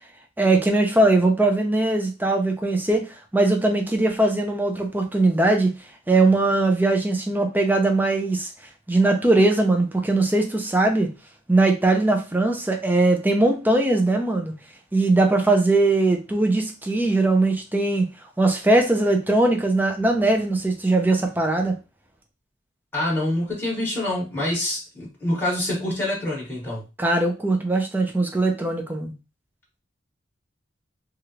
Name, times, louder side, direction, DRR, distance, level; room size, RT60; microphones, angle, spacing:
voice 1, 0.4-5.7 6.1-8.5 8.9-11.1 11.5-14.5 14.9-18.1 18.4-21.8 27.0-29.1, right 2 dB, 10° right, 3 dB, 0.6 m, -20 dB
voice 2, 22.9-26.8, left 1 dB, 10° left, -6 dB, 1.3 m, -26 dB
3.1 x 2.5 x 2.8 m, 0.28 s
head